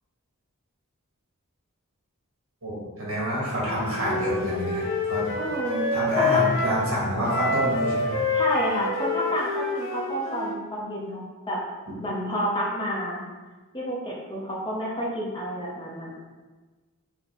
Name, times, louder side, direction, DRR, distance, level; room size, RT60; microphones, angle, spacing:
voice 1, 2.6-5.2 5.9-8.2, equal, 65° right, -5 dB, 1.3 m, -28 dB
Wind instrument woodwind instrument, 3.6-6.8 7.3-10.6, left 3 dB, 65° left, 0.9 m, -27 dB
voice 2, 5.4-5.9 6.1-6.4 8.3-11.6 12.0-13.2 13.7-16.2, equal, 20° left, -5 dB, 0.6 m, -29 dB
5.5 x 2.1 x 2.9 m, 1.3 s
head